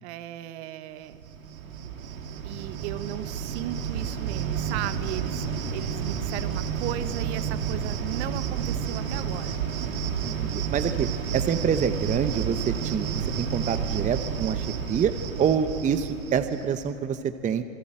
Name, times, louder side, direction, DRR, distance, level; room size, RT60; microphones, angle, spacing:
voice 1, 0.0-1.2 2.4-9.6, right 13 dB, 50° right, 13 dB, 1.3 m, -36 dB
Cricket, 1.1-16.8, right 7 dB, 75° right, 2.6 m, -31 dB
voice 2, 10.2-15.1 15.4-17.6, right 7 dB, 20° right, 10 dB, 0.9 m, -27 dB
27.0 x 19.5 x 8.9 m, 2.6 s
hypercardioid pair, 115°, 41 cm